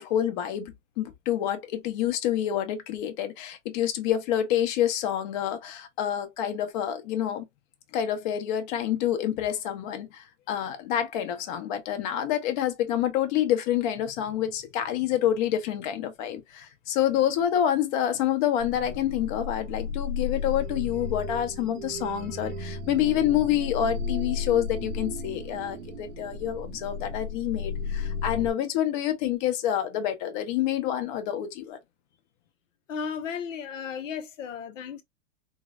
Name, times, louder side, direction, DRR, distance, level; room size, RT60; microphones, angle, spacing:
voice 1, 0.0-7.4 7.9-31.8, left 11 dB, 40° left, 0.8 m, -27 dB
sound 1, 18.6-28.5, left 4 dB, 75° right, 0.6 m, -34 dB
voice 2, 32.9-35.0, left 6 dB, 80° left, 0.6 m, -34 dB
3.7 x 2.1 x 2.2 m
hypercardioid pair, 130°, 38 cm